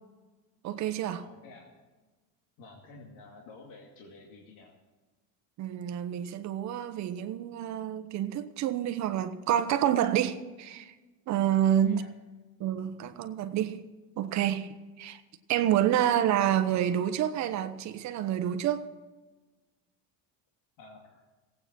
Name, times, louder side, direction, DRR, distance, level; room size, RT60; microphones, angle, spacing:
voice 1, 0.6-1.2 5.6-10.9 11.3-12.0 12.6-13.8 14.2-14.7 15.0-15.2 15.5-18.9, right 10 dB, 45° right, 9 dB, 1.1 m, -28 dB
voice 2, 1.2-1.8 2.6-4.7 11.6-12.1 20.8-21.2, left 3 dB, 60° left, -1 dB, 2.4 m, -51 dB
18.0 x 8.8 x 6.1 m, 1.2 s
cardioid pair, 155°, 37 cm